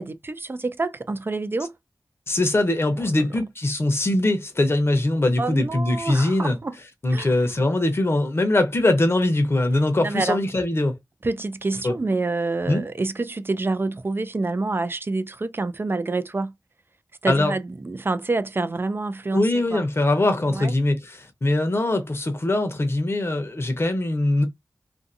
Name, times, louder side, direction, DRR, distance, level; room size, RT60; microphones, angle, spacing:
voice 1, 0.0-1.7 3.0-3.2 5.4-6.8 7.1-7.6 10.0-10.4 11.2-16.5 17.2-19.8 20.5-20.8, right 3 dB, 35° right, 0.4 m, -27 dB
voice 2, 2.3-6.6 7.0-11.0 11.8-11.9 12.7-12.8 17.3-17.5 19.3-24.5, left 2 dB, 40° left, 0.8 m, -22 dB
2.6 x 2.5 x 2.6 m
wide cardioid pair, 80°, 6 cm